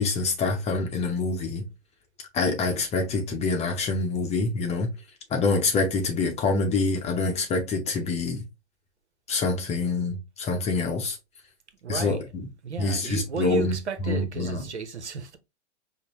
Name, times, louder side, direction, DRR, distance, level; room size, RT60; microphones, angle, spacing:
voice 1, 0.0-1.7 2.3-4.9 5.3-8.4 9.3-11.2 11.9-12.4 12.8-13.7 14.0-14.6, left 3 dB, 20° left, 0.7 m, -26 dB
voice 2, 11.8-12.3 12.6-15.4, right 6 dB, 85° right, 0.9 m, -34 dB
5.2 x 2.2 x 2.9 m
hypercardioid pair, 110°, 34 cm